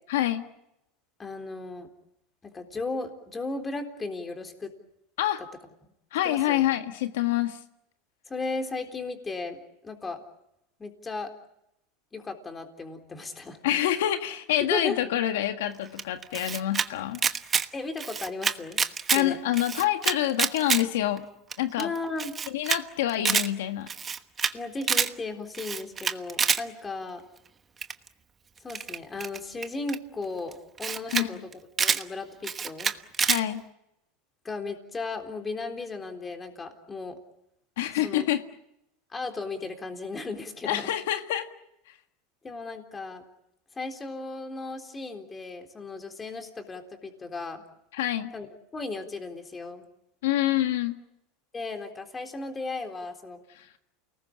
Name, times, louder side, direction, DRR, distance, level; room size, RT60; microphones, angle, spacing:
voice 1, 0.1-0.4 5.2-5.4 6.1-7.6 13.6-17.2 19.1-21.2 21.6-21.9 22.5-23.9 31.1-31.4 33.2-33.6 37.8-38.4 40.6-41.5 47.9-48.3 50.2-51.0 53.5-53.7, left 13 dB, 80° left, 7 dB, 1.6 m, -27 dB
voice 2, 1.2-1.9 2.4-4.7 6.2-6.6 8.3-9.6 9.8-10.2 10.8-11.3 12.1-13.6 14.7-15.0 17.7-18.8 19.1-19.4 21.8-22.4 24.5-27.2 28.6-31.4 31.8-32.9 34.4-37.2 38.0-38.3 39.1-40.9 42.4-43.2 43.8-47.6 48.3-48.5 48.7-49.9 51.5-53.4, left 3 dB, 15° left, 5 dB, 3.8 m, -35 dB
Camera, 16.0-16.9 17.1-17.7 18.0-19.2 19.5-20.8 21.2-21.3 21.5-21.6 21.8-21.9 22.2-22.8 23.1-23.5 23.9-24.5 24.8-25.1 25.5-26.6 27.8-28.1 28.7-30.0 30.5-30.6 30.8-31.3 31.5-32.0 32.4-33.4, right 6 dB, 20° right, 1.2 m, -27 dB
29.0 x 19.5 x 8.7 m, 0.84 s
supercardioid pair, 135°, 0 cm